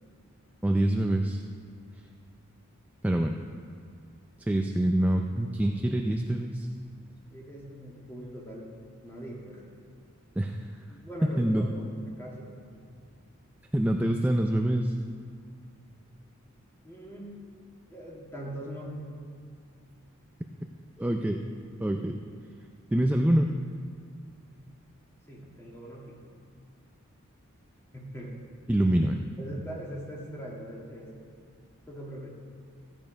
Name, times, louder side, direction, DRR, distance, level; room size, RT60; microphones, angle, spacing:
voice 1, 0.6-1.4 3.0-3.3 4.5-6.7 10.4-10.6 11.4-11.7 13.7-14.9 21.0-21.4 21.8-22.2 22.9-23.5 28.7-29.2, right 1 dB, 5° right, 3 dB, 0.4 m, -25 dB
voice 2, 7.3-8.7 9.0-9.6 10.9-12.9 16.8-17.3 17.9-19.0 25.3-26.2 27.9-28.4 29.0-29.1 29.4-31.1 31.9-32.3, equal, 10° left, -3 dB, 2.2 m, -41 dB
14.5 x 9.1 x 5.2 m, 2.3 s
head